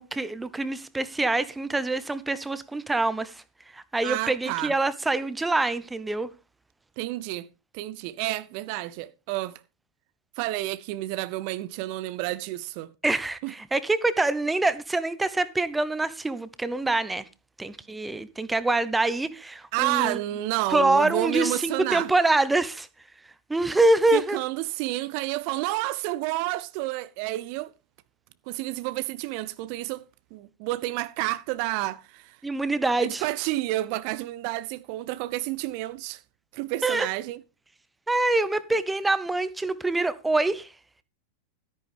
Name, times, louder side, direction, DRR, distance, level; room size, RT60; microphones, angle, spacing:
voice 1, 0.0-3.3 3.7-6.3 13.0-17.2 17.6-20.2 20.7-22.9 23.5-24.4 32.4-33.2 36.8-37.1 38.1-40.7, right 2 dB, 10° right, 0.9 m, -25 dB
voice 2, 4.0-4.7 7.0-7.5 7.7-9.6 10.4-12.9 13.4-13.5 19.7-22.1 24.1-27.7 28.5-30.0 30.3-32.4 33.0-36.2 36.5-37.4, right 17 dB, 45° right, 0.6 m, -30 dB
13.5 x 9.8 x 3.6 m
figure-of-eight pair, 90°, 0 cm